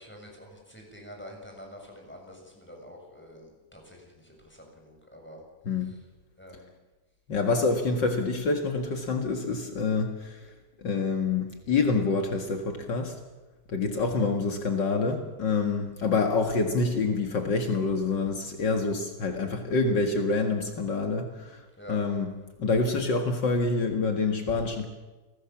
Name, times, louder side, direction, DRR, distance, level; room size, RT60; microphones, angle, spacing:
voice 1, 0.0-5.4 6.4-6.7 21.8-22.0, equal, ahead, 1 dB, 6.7 m, -47 dB
voice 2, 7.3-10.4 10.8-13.1 13.7-21.6 21.9-24.8, left 3 dB, 65° left, 4 dB, 1.0 m, -27 dB
29.5 x 19.5 x 7.3 m, 1.2 s
omnidirectional pair, 5.0 m